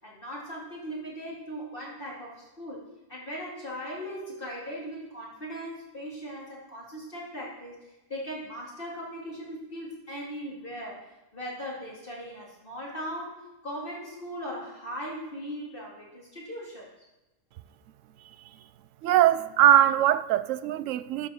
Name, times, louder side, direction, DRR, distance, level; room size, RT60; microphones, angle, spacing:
voice 1, 0.0-2.8 3.1-11.0 11.3-16.9, equal, 35° left, 3.7 m, -39 dB
voice 2, 19.0-21.3, right 12 dB, 65° right, 0.8 m, -21 dB
12.5 x 6.0 x 6.2 m
omnidirectional pair, 1.6 m